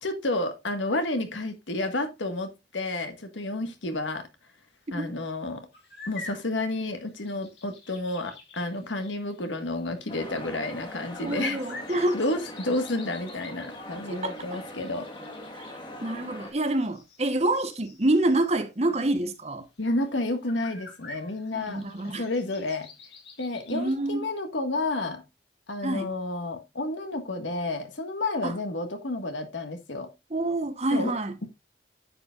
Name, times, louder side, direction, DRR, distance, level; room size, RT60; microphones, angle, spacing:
voice 1, 0.0-4.3 4.9-5.7 6.1-11.6 11.9-15.1 19.8-22.9 23.4-25.2 25.7-30.1 30.9-31.1, left 2 dB, 90° left, 1.6 m, -31 dB
sound 1, 5.7-18.6 19.1-19.2 19.7-19.8 20.0-23.9, left 3 dB, 60° left, 2.7 m, -48 dB
sound 2, 10.1-16.5, left 1 dB, 25° left, 1.7 m, -41 dB
voice 2, 11.2-12.2 14.1-14.6 15.5-15.7 16.0-19.7 21.5-22.3 23.7-24.3 25.8-26.1 28.4-28.6 30.3-31.4, right 1 dB, 35° right, 0.9 m, -27 dB
9.7 x 7.8 x 2.4 m
head